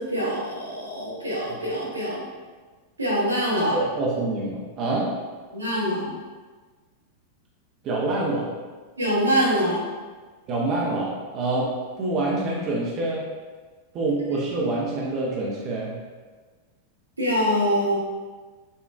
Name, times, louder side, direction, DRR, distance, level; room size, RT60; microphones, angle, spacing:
voice 1, 0.0-2.2 3.0-3.8 5.5-6.1 9.0-9.9 17.2-18.0, equal, 80° right, -6 dB, 1.0 m, -24 dB
voice 2, 3.7-5.1 7.8-8.5 10.5-11.7 12.0-13.3 13.9-16.0, right 2 dB, 35° right, -4 dB, 0.5 m, -26 dB
5.1 x 2.3 x 2.4 m, 1.4 s
figure-of-eight pair, 90°, 0 cm